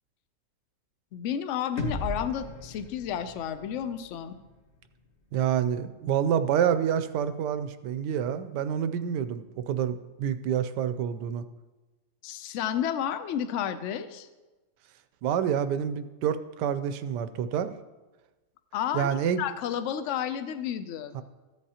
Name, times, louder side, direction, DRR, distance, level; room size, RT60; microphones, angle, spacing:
voice 1, 1.1-4.4 12.2-14.3 18.7-21.2, left 9 dB, 65° left, 11 dB, 0.7 m, -31 dB
sound 1, 1.8-5.7, left 1 dB, 45° left, 1.2 m, -38 dB
voice 2, 5.3-11.4 15.2-17.7 18.9-19.4 21.1-21.2, right 9 dB, 85° right, 11 dB, 1.2 m, -28 dB
14.5 x 8.1 x 2.8 m, 1.2 s
omnidirectional pair, 1.8 m